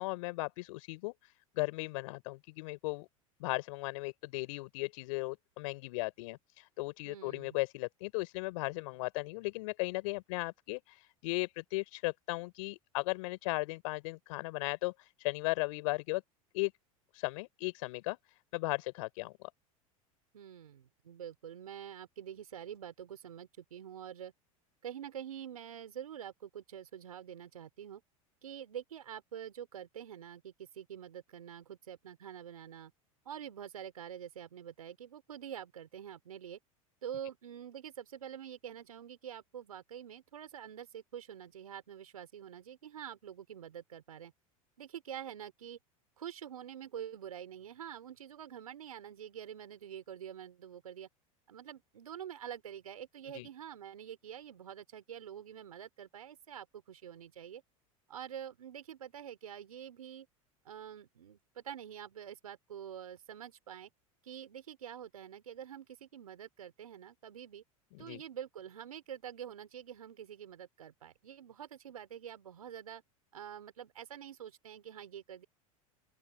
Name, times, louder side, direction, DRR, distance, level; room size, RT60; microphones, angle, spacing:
voice 1, 0.0-3.1 3.4-16.2 16.5-16.7 17.1-18.2 18.5-19.3 53.3-53.5 67.9-68.2, left 23 dB, 65° left, 4.6 m, -36 dB
voice 2, 7.0-7.6 20.3-24.3 24.8-28.0 28.4-32.9 33.2-36.6 37.0-44.3 44.8-45.8 46.2-51.1 51.5-57.6 58.1-60.3 60.6-63.9 64.2-67.6 68.0-73.0 73.3-75.4, right 9 dB, 85° right, 4.4 m, -46 dB
open air
hypercardioid pair, 85°, 18 cm